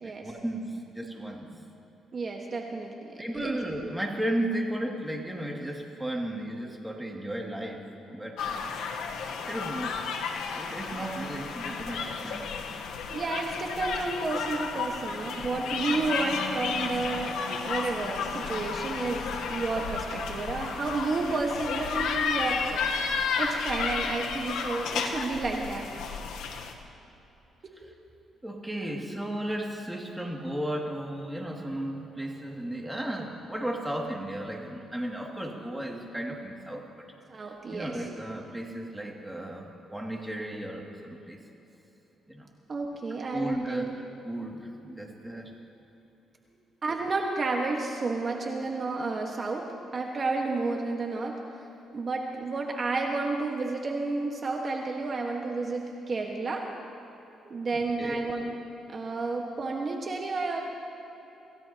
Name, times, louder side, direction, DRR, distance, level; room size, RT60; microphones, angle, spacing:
voice 1, 0.0-1.6 3.2-7.8 8.1-8.4 9.4-10.1 10.6-12.7 27.8-37.1 37.4-41.4 42.3-42.5 43.3-45.6 48.2-48.3 56.2-56.4 57.4-58.2, right 1 dB, 5° right, 0 dB, 2.5 m, -35 dB
voice 2, 2.1-3.6 10.9-11.1 13.1-17.4 17.6-22.9 23.4-25.9 37.3-38.0 42.7-44.0 46.8-49.7 49.9-51.4 51.9-56.7 57.5-58.6 58.9-60.6, right 3 dB, 40° right, 1 dB, 1.5 m, -31 dB
sound 1, 8.4-26.7, left 5 dB, 90° left, 1.2 m, -32 dB
27.0 x 16.0 x 3.0 m, 3.0 s
cardioid pair, 90°, 0 cm